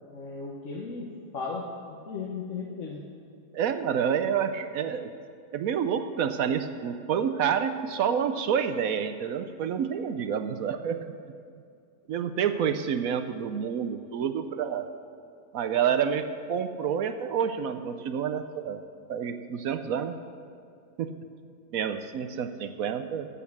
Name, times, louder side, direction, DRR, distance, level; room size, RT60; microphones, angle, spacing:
voice 1, 0.1-3.1, left 4 dB, 55° left, -1 dB, 1.3 m, -36 dB
voice 2, 3.5-5.1 5.5-11.0 12.1-14.9 15.5-18.8 19.1-20.1 21.0-21.1 21.7-23.3, right 8 dB, 65° right, 9 dB, 1.0 m, -28 dB
12.5 x 8.5 x 7.1 m, 2.3 s
omnidirectional pair, 1.7 m